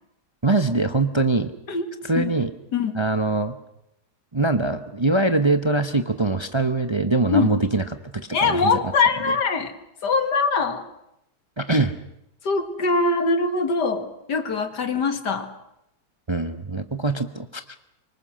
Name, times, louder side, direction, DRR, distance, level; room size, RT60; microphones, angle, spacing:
voice 1, 0.4-1.5 2.0-2.5 2.9-3.6 4.3-7.8 8.1-8.7 11.6-12.0 16.3-17.8, right 2 dB, 20° right, 8 dB, 0.8 m, -22 dB
voice 2, 8.3-9.7 10.0-10.9 12.4-15.5, left 4 dB, 80° left, 8 dB, 2.5 m, -22 dB
25.5 x 24.0 x 6.4 m, 0.81 s
omnidirectional pair, 1.8 m